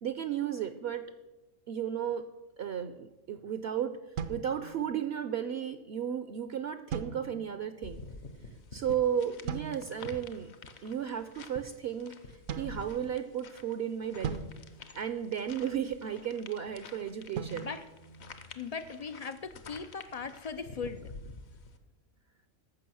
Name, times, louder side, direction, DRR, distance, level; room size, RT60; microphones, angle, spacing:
voice 1, 0.0-1.1 1.7-2.3 2.6-4.0 4.3-8.0 8.7-10.5 10.8-14.4 14.9-17.7, right 9 dB, 60° right, 10 dB, 0.7 m, -34 dB
sound 1, 4.2-5.2 6.9-7.7 9.5-10.1 12.5-13.5 14.2-15.7 17.4-18.9, right 6 dB, 80° right, 1.2 m, -41 dB
sound 2, 7.8-21.8, left 3 dB, 60° left, 1.1 m, -49 dB
voice 2, 17.4-17.8 18.6-21.1, left 5 dB, 80° left, 10 dB, 0.3 m, -39 dB
14.5 x 6.1 x 6.2 m, 1.1 s
omnidirectional pair, 1.4 m